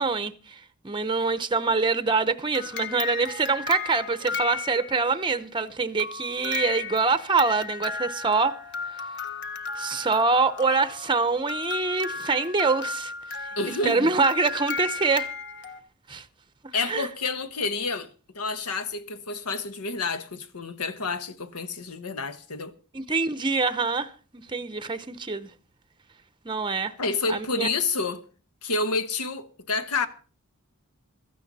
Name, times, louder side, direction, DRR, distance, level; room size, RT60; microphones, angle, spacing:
voice 1, 0.0-8.6 8.8-9.1 9.8-13.1 13.8-15.3 16.1-16.2 16.9-17.1 22.9-25.5 26.4-26.9 27.3-27.7, right 4 dB, 20° right, 0.7 m, -25 dB
sound 1, 2.5-5.2 6.0-15.8, left 5 dB, 55° left, 1.3 m, -35 dB
voice 2, 13.6-14.1 16.7-18.1 18.3-22.7 27.0-28.2 28.6-30.1, left 3 dB, 85° left, 1.3 m, -29 dB
16.0 x 14.0 x 4.1 m
head